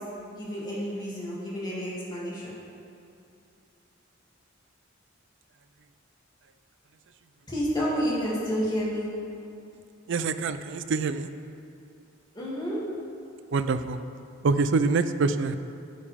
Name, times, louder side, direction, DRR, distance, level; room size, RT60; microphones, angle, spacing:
voice 1, 0.4-2.5 7.5-9.1 12.3-12.8, equal, 20° left, -7 dB, 2.6 m, -30 dB
voice 2, 10.1-11.3 13.5-14.0 14.4-15.6, right 4 dB, 65° right, 11 dB, 0.4 m, -25 dB
11.5 x 8.9 x 3.6 m, 2.6 s
head